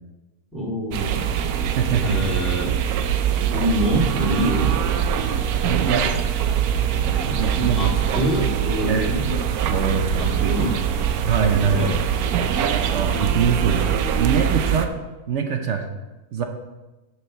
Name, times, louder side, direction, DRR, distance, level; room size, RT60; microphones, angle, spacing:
voice 1, 0.5-1.2 2.0-2.7 3.5-4.8 7.2-9.4 10.2-10.8 11.7-11.9, right 1 dB, ahead, -5 dB, 2.2 m, -25 dB
sound 1, 0.9-14.9, right 8 dB, 85° right, 1.1 m, -23 dB
voice 2, 1.8-2.2 5.7-6.1 7.4-8.0 8.9-9.2 9.7-10.7 11.3-11.9 12.9-13.9 14.2-14.9 15.3-15.9 16.3-16.4, right 6 dB, 60° right, 5 dB, 0.9 m, -23 dB
7.2 x 4.8 x 6.3 m, 1.1 s
omnidirectional pair, 1.5 m